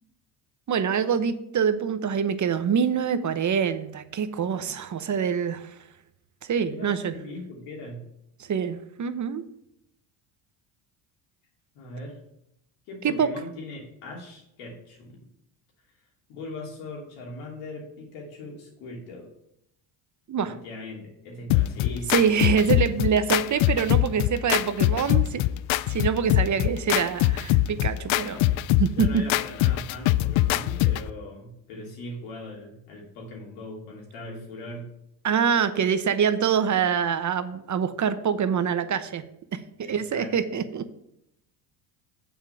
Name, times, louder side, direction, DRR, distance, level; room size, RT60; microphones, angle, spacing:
voice 1, 0.7-5.7 6.4-7.1 8.5-9.4 13.0-13.3 20.3-20.6 22.1-25.4 25.9-28.4 28.8-29.2 35.2-39.2 39.8-40.9, right 7 dB, 35° right, 11 dB, 0.8 m, -25 dB
voice 2, 6.6-8.1 11.7-12.2 12.9-15.2 16.3-19.3 20.5-22.2 28.3-28.5 28.7-34.9 39.8-40.3, left 2 dB, 85° left, -1 dB, 3.0 m, -40 dB
sound 1, 21.5-31.1, left 15 dB, 70° left, 0.5 m, -23 dB
7.2 x 4.9 x 6.9 m, 0.79 s
supercardioid pair, 80°, 49 cm